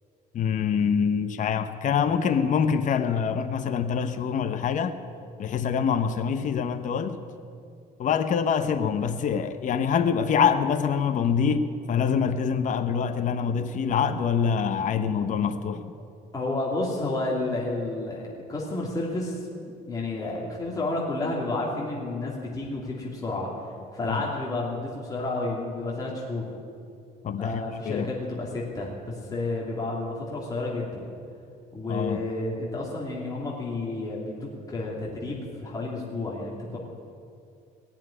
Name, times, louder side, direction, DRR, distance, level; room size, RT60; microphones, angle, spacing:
voice 1, 0.3-5.0 5.4-7.2 8.0-15.8 24.1-24.2 27.2-28.1 31.9-32.2, left 7 dB, 50° left, 8 dB, 0.9 m, -25 dB
voice 2, 16.3-19.5 19.9-23.5 23.9-26.5 27.4-31.1 31.7-36.8, left 2 dB, 20° left, -4 dB, 2.8 m, -31 dB
18.0 x 7.4 x 9.9 m, 2.5 s
cardioid pair, 110°, 17 cm